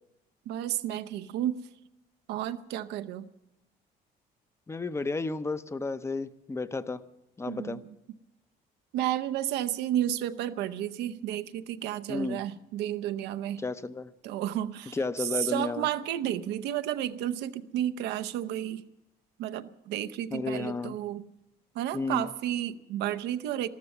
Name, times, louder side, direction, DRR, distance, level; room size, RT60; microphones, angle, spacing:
voice 1, 0.5-1.6 2.3-3.3 7.5-8.0 8.9-13.6 14.2-18.9 19.4-21.2 21.7-23.7, right 12 dB, 85° right, 11 dB, 0.8 m, -32 dB
voice 2, 4.7-7.0 7.4-7.8 12.1-12.4 13.6-14.1 14.9-15.9 20.3-21.0 21.9-22.3, left 3 dB, 15° left, 13 dB, 0.7 m, -32 dB
13.5 x 13.0 x 7.2 m, 0.93 s
cardioid pair, 110°, 17 cm